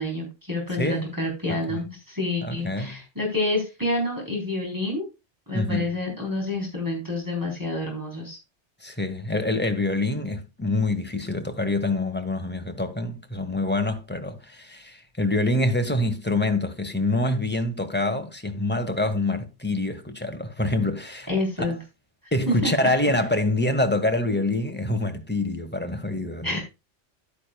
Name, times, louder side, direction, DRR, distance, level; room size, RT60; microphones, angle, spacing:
voice 1, 0.0-5.0 5.5-8.4 21.3-21.8 22.5-23.0 26.4-26.6, left 2 dB, 15° right, 4.0 m, -28 dB
voice 2, 0.7-1.1 1.5-1.8 2.4-3.0 5.5-5.9 8.8-21.3 21.6-21.8 22.3-26.6, left 2 dB, 10° left, 1.3 m, -26 dB
11.0 x 9.9 x 2.3 m
omnidirectional pair, 1.3 m